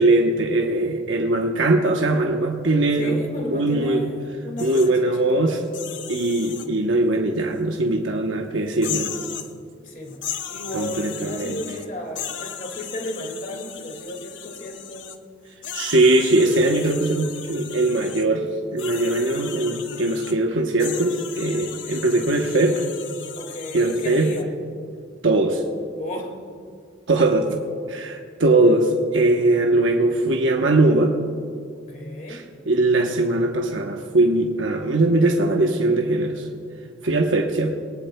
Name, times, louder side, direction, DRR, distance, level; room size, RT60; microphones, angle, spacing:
voice 1, 0.0-3.2 3.5-4.1 4.6-5.6 6.1-9.1 10.7-11.6 15.7-22.8 23.7-24.3 25.2-25.6 27.1-27.6 27.9-31.2 32.3-36.5 37.0-37.8, right 2 dB, 85° right, 2 dB, 0.9 m, -20 dB
voice 2, 3.0-5.6 9.8-10.2 10.5-15.2 23.4-24.5 26.0-26.3 31.9-32.4, left 1 dB, 40° left, 2 dB, 2.0 m, -34 dB
sound 1, 4.6-4.9 5.6-6.7 7.7-7.8 8.7-9.5 10.1-11.9 12.2-15.2 15.6-18.3 18.8-20.4 20.8-24.4, left 9 dB, 75° left, 0.7 m, -36 dB
21.0 x 18.5 x 2.2 m, 2.2 s
head